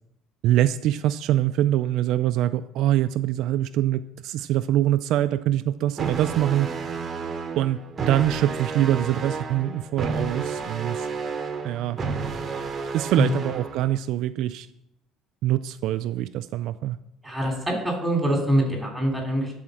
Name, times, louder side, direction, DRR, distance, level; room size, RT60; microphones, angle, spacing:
voice 1, 0.4-6.7 7.6-11.1 11.6-12.0 12.9-14.7 15.4-17.0, right 13 dB, 65° right, 10 dB, 0.3 m, -24 dB
sound 1, 6.0-13.9, right 4 dB, 25° right, 0.9 m, -31 dB
voice 2, 17.2-19.5, equal, ahead, 0 dB, 2.6 m, -24 dB
11.5 x 4.3 x 6.1 m, 0.81 s
cardioid pair, 150°, 0 cm